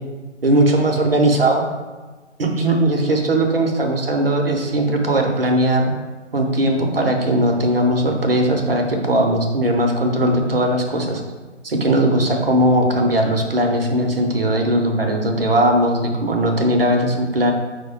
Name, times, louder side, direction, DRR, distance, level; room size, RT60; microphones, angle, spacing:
voice 1, 0.4-1.6 2.4-5.9 6.3-11.2 11.6-17.5, right 1 dB, 50° right, 2 dB, 0.6 m, -18 dB
4.7 x 2.1 x 4.7 m, 1.3 s
figure-of-eight pair, 155°, 38 cm